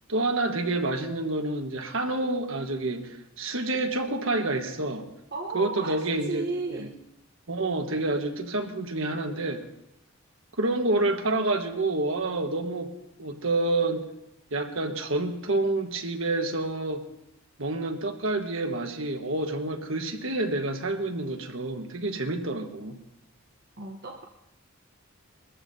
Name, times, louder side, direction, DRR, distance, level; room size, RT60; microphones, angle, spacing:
voice 1, 0.1-5.1 5.5-6.9 7.5-9.6 10.6-12.9 13.2-14.1 14.5-17.0 17.6-23.0, right 2 dB, 65° right, 4 dB, 1.5 m, -28 dB
voice 2, 5.3-6.9 23.8-24.2, right 3 dB, 45° right, 1 dB, 1.0 m, -34 dB
22.5 x 14.0 x 2.8 m, 0.84 s
head